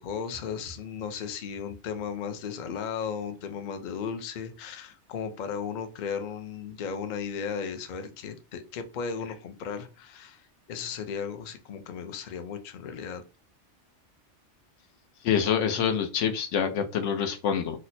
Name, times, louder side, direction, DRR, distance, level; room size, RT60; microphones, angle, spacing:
voice 1, 0.0-13.2, left 6 dB, 55° left, 8 dB, 0.5 m, -35 dB
voice 2, 15.2-17.8, left 7 dB, 80° left, 8 dB, 0.9 m, -26 dB
2.8 x 2.1 x 4.1 m, 0.31 s
omnidirectional pair, 1.2 m